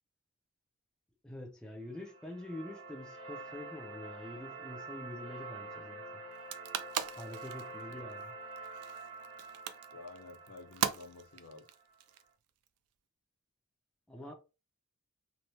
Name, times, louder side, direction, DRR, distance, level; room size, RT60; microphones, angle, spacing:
voice 1, 1.2-6.2 7.2-8.3 14.1-14.3, left 1 dB, 5° left, 0.4 m, -46 dB
sound 1, 1.9-11.9, right 3 dB, 65° right, 1.2 m, -47 dB
sound 2, 6.3-12.7, right 9 dB, 90° right, 0.4 m, -39 dB
voice 2, 9.9-11.7 14.1-14.3, left 3 dB, 75° left, 0.7 m, -51 dB
3.0 x 2.1 x 2.7 m
head